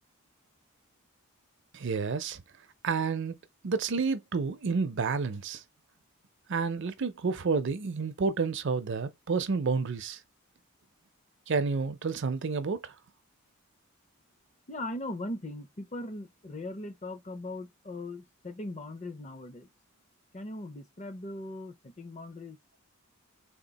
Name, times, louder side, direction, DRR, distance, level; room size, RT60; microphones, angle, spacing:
voice 1, 1.7-2.4 2.8-3.4 3.6-5.6 6.5-10.2 11.5-12.9, right 4 dB, 55° right, 0.5 m, -30 dB
voice 2, 14.7-19.7 20.3-22.6, left 1 dB, 30° left, 0.6 m, -39 dB
3.6 x 2.4 x 4.0 m
head